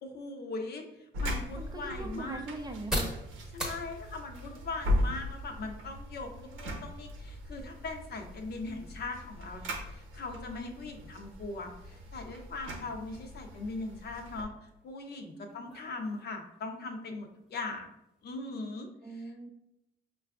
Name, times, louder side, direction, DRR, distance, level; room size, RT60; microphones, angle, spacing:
voice 1, 0.0-2.4 3.5-17.9 18.2-19.3, left 3 dB, 55° left, 4 dB, 0.6 m, -40 dB
sound 1, 0.8-18.4, equal, 5° right, 0.8 m, -46 dB
sound 2, 1.1-14.4, left 1 dB, 90° right, 0.7 m, -38 dB
voice 2, 1.6-3.2 15.3-15.6 19.0-19.5, right 2 dB, 20° right, 3 dB, 0.4 m, -41 dB
5.5 x 2.3 x 2.4 m, 0.85 s
cardioid pair, 90°, 20 cm